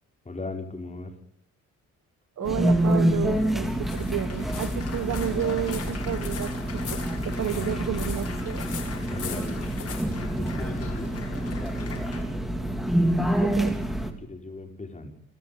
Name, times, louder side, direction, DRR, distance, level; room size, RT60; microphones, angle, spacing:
voice 1, 0.3-1.1 7.5-7.8 9.0-9.6 10.2-11.2 11.5-12.4 14.2-15.1, left 2 dB, 25° left, 4 dB, 5.3 m, -38 dB
Applause, 2.4-12.2, left 6 dB, 55° left, 6.1 m, -43 dB
sound 1, 2.4-14.1, right 1 dB, ahead, 3.2 m, -27 dB
voice 2, 2.4-8.7 13.4-13.8, right 11 dB, 70° right, 13 dB, 1.2 m, -31 dB
sound 2, 2.8-11.0, left 7 dB, 80° left, 6.1 m, -42 dB
29.0 x 13.0 x 8.8 m, 0.71 s
cardioid pair, 105°, 30 cm